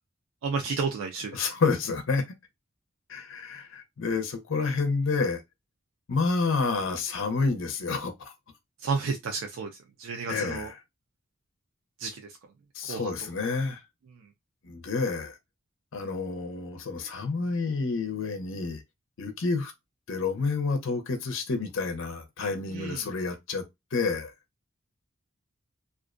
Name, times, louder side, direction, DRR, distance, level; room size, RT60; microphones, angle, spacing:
voice 1, 0.4-1.4 8.8-9.7 10.0-10.7 12.0-12.2 12.9-13.1 22.7-23.0, right 5 dB, 70° right, 0.4 m, -31 dB
voice 2, 1.3-2.2 3.1-5.4 6.1-8.3 10.3-10.8 12.7-13.8 14.6-15.3 15.9-18.8 19.2-19.7 20.1-23.6 23.9-24.3, left 4 dB, 65° left, 0.6 m, -29 dB
2.4 x 2.1 x 2.4 m
head